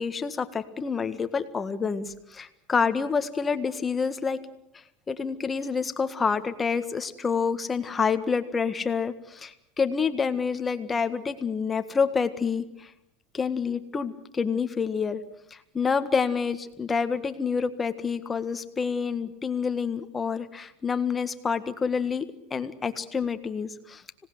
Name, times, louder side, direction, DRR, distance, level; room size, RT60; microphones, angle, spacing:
voice 1, 0.0-4.4 5.1-12.9 13.3-15.2 15.5-22.2 22.5-24.3, left 5 dB, 20° left, 9 dB, 1.7 m, -28 dB
26.0 x 18.5 x 8.0 m, 0.80 s
supercardioid pair, 130°, 0 cm